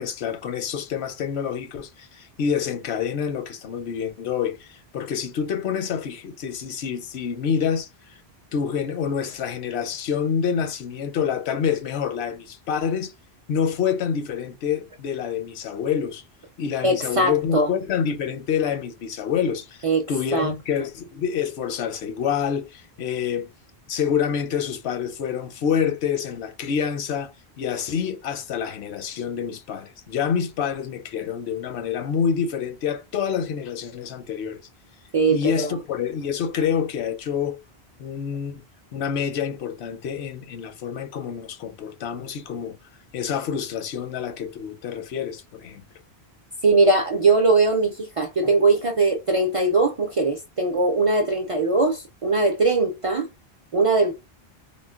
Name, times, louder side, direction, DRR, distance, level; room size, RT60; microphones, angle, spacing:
voice 1, 0.0-7.9 8.5-13.1 13.5-16.2 16.6-23.5 23.9-27.3 27.6-34.6 35.3-37.6 38.0-38.6 38.9-42.8 43.1-45.8, left 7 dB, 85° left, 0.9 m, -27 dB
voice 2, 16.8-17.7 19.8-20.5 35.1-35.7 46.6-53.3 53.7-54.1, right 3 dB, 50° right, 0.4 m, -20 dB
3.7 x 2.1 x 2.3 m
omnidirectional pair, 1.1 m